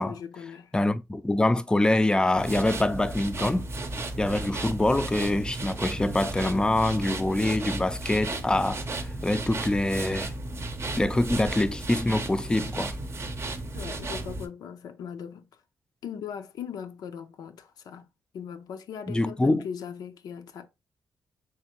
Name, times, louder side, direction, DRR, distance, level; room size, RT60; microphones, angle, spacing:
voice 1, 0.0-0.7 13.7-15.5 16.0-18.1 18.3-20.7, left 7 dB, 85° left, 0.5 m, -39 dB
voice 2, 0.7-3.7 4.2-10.3 11.0-13.0 19.1-19.6, left 1 dB, 15° left, 0.4 m, -25 dB
sound 1, 2.4-14.5, right 2 dB, 40° right, 0.6 m, -34 dB
3.4 x 3.1 x 2.9 m
cardioid pair, 80°, 7 cm